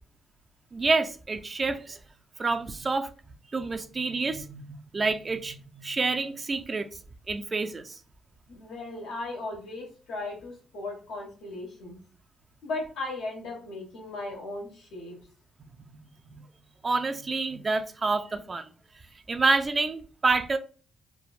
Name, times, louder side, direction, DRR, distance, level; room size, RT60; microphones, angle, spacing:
voice 1, 0.7-2.0 2.4-3.1 3.5-6.9 7.3-8.0 16.3-16.5 16.8-18.7 19.3-20.6, right 3 dB, 30° right, 0.3 m, -28 dB
voice 2, 8.5-12.0 12.6-15.2, left 2 dB, 85° left, 1.3 m, -37 dB
3.2 x 2.2 x 2.4 m
cardioid pair, 90°, 0 cm